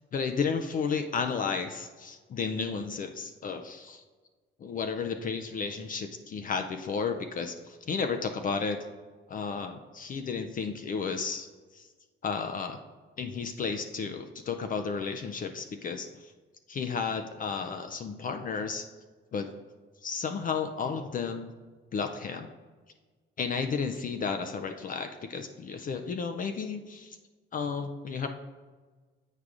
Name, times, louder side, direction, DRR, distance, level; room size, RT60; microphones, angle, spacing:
voice 1, 0.0-4.0 4.6-8.8 9.3-11.5 11.7-11.9 12.2-12.8 13.2-16.3 16.7-18.9 19.3-19.5 20.0-21.5 21.9-22.5 23.4-27.2 27.5-28.3, left 5 dB, 45° left, 7 dB, 0.4 m, -33 dB
8.2 x 4.6 x 2.5 m, 1.4 s
cardioid pair, 90°, 20 cm